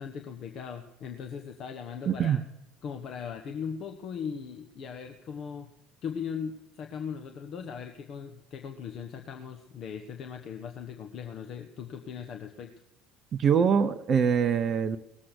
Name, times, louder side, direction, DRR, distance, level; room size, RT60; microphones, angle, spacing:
voice 1, 0.0-2.4 2.8-5.7 6.0-12.7, left 7 dB, 45° left, 4 dB, 1.1 m, -39 dB
voice 2, 2.1-2.4 13.3-15.0, right 7 dB, 35° right, 11 dB, 0.7 m, -24 dB
19.0 x 7.7 x 6.4 m, 0.83 s
figure-of-eight pair, 60°, 0 cm